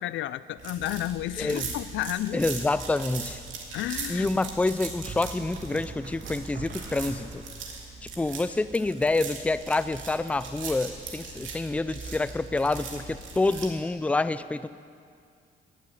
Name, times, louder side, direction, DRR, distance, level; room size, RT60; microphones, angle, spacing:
voice 1, 0.0-2.4 3.7-4.3, left 13 dB, 75° left, 17 dB, 0.4 m, -32 dB
sound 1, 0.6-13.7, right 5 dB, 75° right, 2.3 m, -40 dB
voice 2, 1.4-1.7 2.3-3.4 4.1-7.4 8.2-14.7, left 2 dB, 5° left, 14 dB, 0.4 m, -27 dB
sound 2, 2.4-2.9 5.1-7.7, right 4 dB, 55° right, 1.8 m, -43 dB
16.5 x 6.3 x 9.9 m, 2.3 s
cardioid pair, 90°, 20 cm